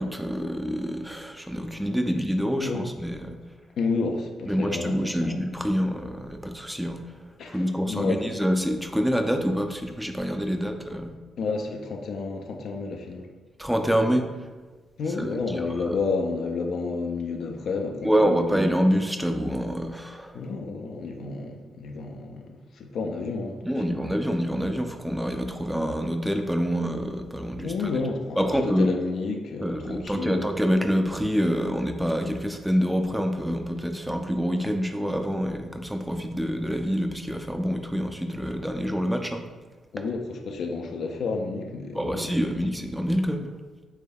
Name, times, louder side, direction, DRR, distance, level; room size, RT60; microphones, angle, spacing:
voice 1, 0.0-3.4 4.5-7.0 7.5-11.1 13.6-14.3 15.2-15.3 15.8-15.9 18.0-20.4 23.6-27.7 28.4-28.9 29.6-39.4 41.9-43.5, equal, 5° right, 5 dB, 0.4 m, -26 dB
voice 2, 3.8-5.4 7.4-8.4 11.0-13.3 15.0-18.6 20.3-24.0 27.6-30.5 39.9-42.4, left 4 dB, 65° left, 3 dB, 0.3 m, -31 dB
3.4 x 3.4 x 2.2 m, 1.3 s
hypercardioid pair, 40°, 0 cm